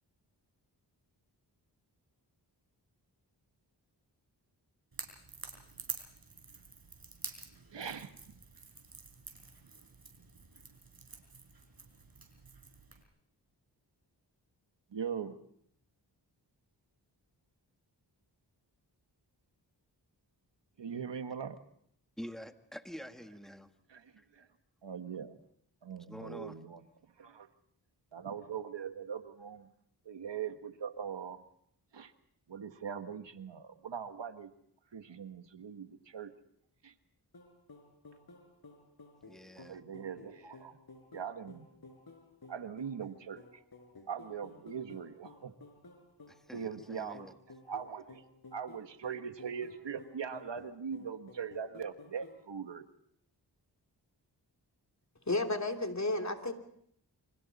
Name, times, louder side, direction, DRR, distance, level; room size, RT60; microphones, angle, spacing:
Crackle / Crack, 4.9-13.0, right 5 dB, 55° right, 5.4 m, -48 dB
voice 1, 7.7-8.2 14.9-15.4 20.8-21.6 23.9-24.5 24.8-25.4 25.8-26.8 27.2-27.5 28.1-29.7 30.0-31.4 31.9-32.1 32.5-34.5 34.9-36.3 36.8-36.9 39.6-40.8 41.1-41.7 42.5-43.6 44.1-45.5 46.5-47.3 47.7-48.2 48.5-52.9, right 7 dB, 75° right, 1.6 m, -41 dB
voice 2, 22.2-23.7 24.2-24.3 26.0-26.6 39.3-39.8 46.3-47.3, equal, ahead, 1.7 m, -47 dB
sound 1, 37.3-52.4, left 3 dB, 55° left, 5.0 m, -55 dB
voice 3, 55.3-56.5, left 2 dB, 40° left, 3.1 m, -32 dB
28.5 x 25.5 x 4.2 m
cardioid pair, 55°, 43 cm